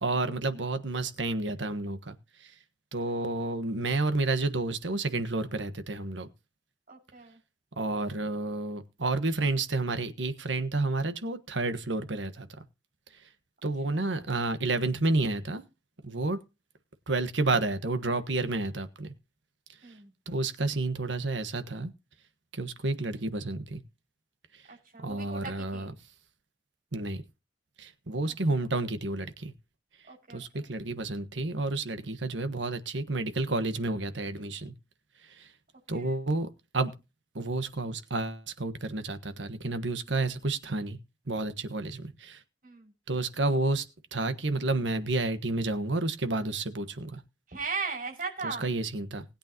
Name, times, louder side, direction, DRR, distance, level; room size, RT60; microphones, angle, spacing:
voice 1, 0.0-2.1 2.9-6.3 7.8-12.5 13.6-15.6 16.0-16.4 17.1-19.1 20.3-21.9 22.5-23.8 25.0-25.9 26.9-27.2 27.8-29.5 30.3-34.7 35.4-35.5 35.9-36.5 36.7-36.9 37.3-41.0 41.3-42.4 43.1-43.8 44.1-47.2 48.4-49.2, right 2 dB, 85° right, 1.4 m, -30 dB
voice 2, 6.9-7.4 13.9-14.1 19.8-20.1 24.7-25.4 25.7-25.9 28.5-28.6 30.1-30.7 35.9-36.2 42.6-42.9 47.5-48.7, right 4 dB, 50° right, 6.1 m, -38 dB
20.0 x 8.6 x 2.9 m
head